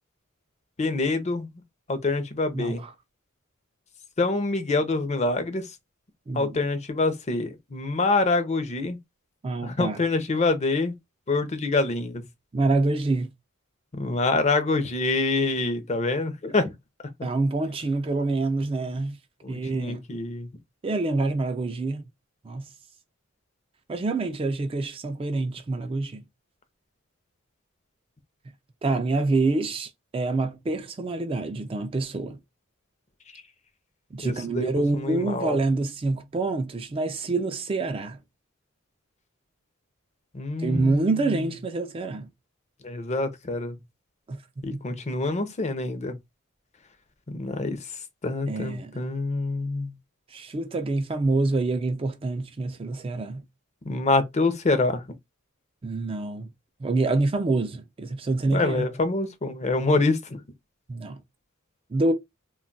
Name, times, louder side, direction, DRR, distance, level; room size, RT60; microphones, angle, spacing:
voice 1, 0.8-1.5 1.9-2.8 4.2-5.6 6.3-9.0 9.6-10.9 11.3-12.2 13.9-16.7 19.4-20.5 34.2-35.6 40.3-41.1 42.8-43.8 44.6-46.2 47.3-47.8 48.2-49.9 53.9-55.0 58.5-60.4, left 3 dB, 35° left, 0.5 m, -26 dB
voice 2, 2.5-2.9 6.3-6.6 9.4-10.0 12.5-13.3 17.2-19.2 19.5-20.0 20.8-22.1 22.4-22.7 23.9-26.2 28.8-32.4 34.1-38.2 40.6-42.3 44.3-44.4 44.7-44.8 48.5-49.0 50.3-53.4 55.8-56.5 56.8-58.9 60.9-61.2 61.9-62.1, right 3 dB, 25° right, 0.3 m, -26 dB
2.2 x 2.1 x 3.8 m
head